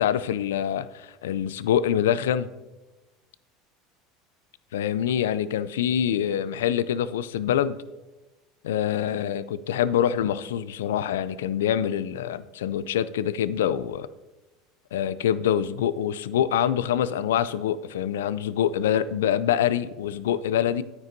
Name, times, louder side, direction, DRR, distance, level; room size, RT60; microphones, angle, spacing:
voice 1, 0.0-2.5 4.7-7.8 8.6-14.1 14.9-20.8, left 10 dB, 85° left, 16 dB, 0.4 m, -25 dB
9.6 x 9.4 x 2.7 m, 1.1 s
hypercardioid pair, 85°, 0 cm